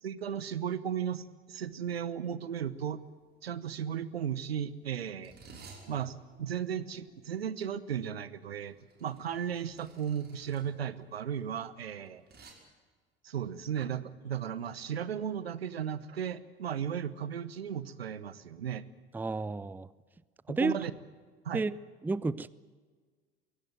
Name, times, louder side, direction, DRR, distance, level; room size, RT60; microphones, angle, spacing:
voice 1, 0.0-3.0 3.4-5.3 5.9-8.7 9.0-12.2 13.2-18.8 20.5-20.9 21.4-21.6, right 8 dB, 75° right, 1.0 m, -35 dB
sound 1, 2.5-2.6 2.9-3.3 4.0-12.5, right 4 dB, 30° right, 5.8 m, -56 dB
voice 2, 19.1-19.9 20.5-20.7 21.5-21.7 22.0-22.5, right 3 dB, 5° right, 0.6 m, -31 dB
23.0 x 17.5 x 9.1 m
figure-of-eight pair, 65°, 30 cm